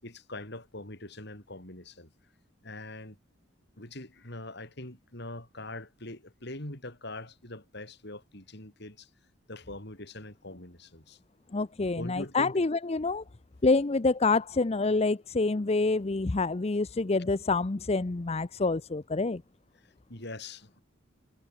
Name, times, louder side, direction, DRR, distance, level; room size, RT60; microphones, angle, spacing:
voice 1, 0.0-2.1 2.6-3.2 3.8-9.1 9.5-11.2 12.0-12.6 19.7-20.8, left 2 dB, 55° left, 6.7 m, -43 dB
voice 2, 11.5-13.2 13.6-19.4, left 3 dB, 30° left, 0.6 m, -27 dB
head